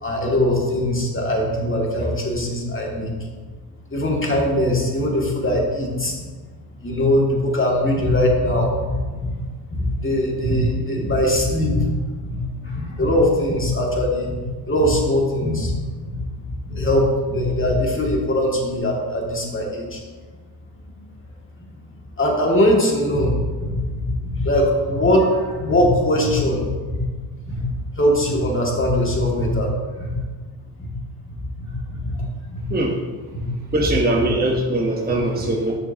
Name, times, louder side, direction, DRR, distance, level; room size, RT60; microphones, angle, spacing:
voice 1, 0.0-3.3 3.9-6.3 6.8-9.3 9.7-11.9 12.2-15.7 16.0-20.0 21.0-21.1 22.2-27.1 27.5-27.7 28.0-30.2 30.8-30.9 31.3-32.6 33.3-33.4 33.8-34.5 35.3-35.4, left 1 dB, 25° left, -1 dB, 2.3 m, -21 dB
voice 2, 33.7-35.7, right 1 dB, 20° right, -1 dB, 1.2 m, -21 dB
9.9 x 6.1 x 2.9 m, 1.4 s
hypercardioid pair, 55°, 50 cm